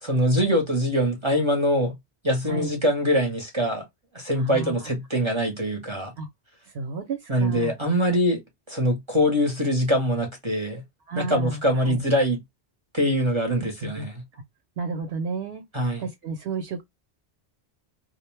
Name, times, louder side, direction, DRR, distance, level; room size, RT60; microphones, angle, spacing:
voice 1, 0.0-1.9 2.2-3.8 4.1-6.1 7.3-8.4 8.7-10.8 11.1-12.4 12.9-14.2 15.7-16.0, equal, 30° right, 0.6 m, -23 dB
voice 2, 4.4-4.7 6.2-6.3 6.7-7.7 11.1-12.0 13.6-14.1 14.3-14.4 14.8-15.6 16.0-16.8, right 4 dB, 65° right, 0.8 m, -32 dB
2.4 x 2.1 x 3.0 m
omnidirectional pair, 1.2 m